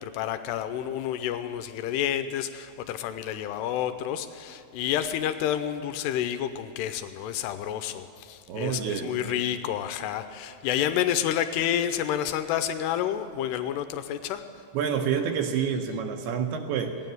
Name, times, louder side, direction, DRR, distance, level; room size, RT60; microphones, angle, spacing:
voice 1, 0.0-14.4, left 10 dB, 80° left, 10 dB, 2.6 m, -29 dB
voice 2, 8.5-9.4 14.7-17.0, right 7 dB, 75° right, 5 dB, 2.6 m, -28 dB
16.5 x 9.7 x 9.2 m, 2.4 s
omnidirectional pair, 4.9 m